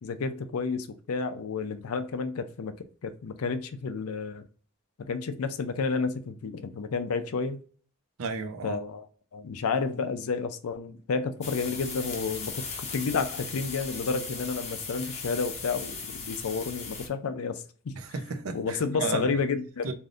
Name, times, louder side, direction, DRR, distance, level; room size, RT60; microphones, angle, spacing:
voice 1, 0.0-2.7 3.0-4.4 5.1-7.6 8.6-18.0 18.5-19.9, left 4 dB, 85° left, 0.5 m, -31 dB
voice 2, 8.2-8.8 17.9-19.4 19.8-19.9, right 4 dB, 85° right, 0.6 m, -33 dB
sound 1, 11.4-17.1, left 5 dB, 30° left, 0.6 m, -38 dB
3.4 x 2.6 x 2.4 m
head